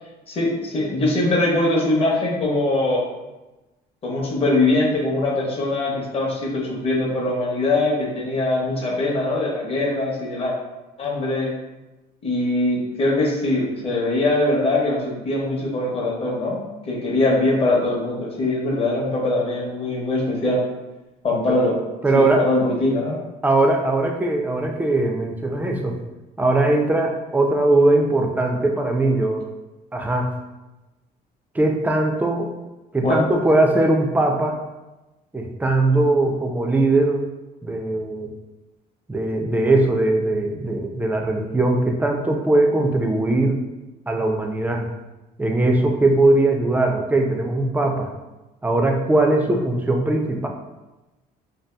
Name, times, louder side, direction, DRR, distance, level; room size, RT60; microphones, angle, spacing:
voice 1, 0.3-3.0 4.0-10.5 11.0-11.5 12.2-16.6 16.9-20.6 21.2-21.8 22.1-23.2 33.0-33.2, left 2 dB, 35° left, -3 dB, 0.7 m, -22 dB
voice 2, 22.0-22.5 23.4-26.0 26.4-29.4 29.9-30.3 31.5-32.5 32.9-34.6 35.3-37.3 37.6-38.3 39.1-43.7 44.1-44.9 45.4-48.1 48.6-50.5, right 2 dB, 10° right, 2 dB, 0.3 m, -20 dB
2.7 x 2.4 x 2.2 m, 1.1 s
cardioid pair, 110°, 17 cm